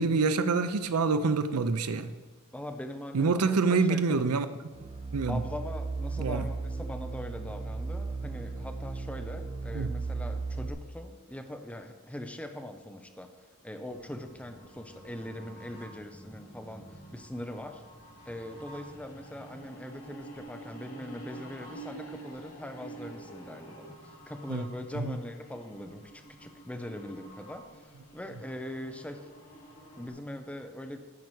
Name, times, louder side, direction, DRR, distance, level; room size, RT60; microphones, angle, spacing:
voice 1, 0.0-2.1 3.1-4.5 5.1-5.4 6.2-6.4 9.7-9.9 24.5-24.6 25.0-25.2, right 4 dB, 80° right, 12 dB, 0.6 m, -26 dB
voice 2, 2.5-3.4 3.8-4.2 5.3-13.3 13.6-17.8 18.3-29.3 30.0-31.1, left 1 dB, 5° left, 6 dB, 0.6 m, -41 dB
sound 1, 4.8-10.7, right 4 dB, 25° right, 0.8 m, -36 dB
sound 2, 13.9-30.1, right 2 dB, 70° left, 2.9 m, -49 dB
9.7 x 4.7 x 7.8 m, 1.3 s
head